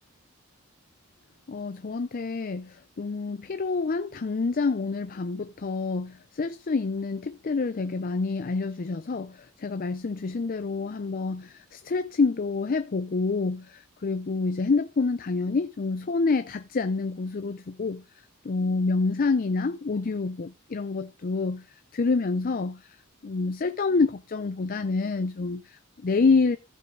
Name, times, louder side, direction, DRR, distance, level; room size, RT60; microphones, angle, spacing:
voice 1, 1.5-18.0 18.4-26.6, left 4 dB, 40° left, 0.5 m, -27 dB
15.0 x 5.4 x 3.8 m
head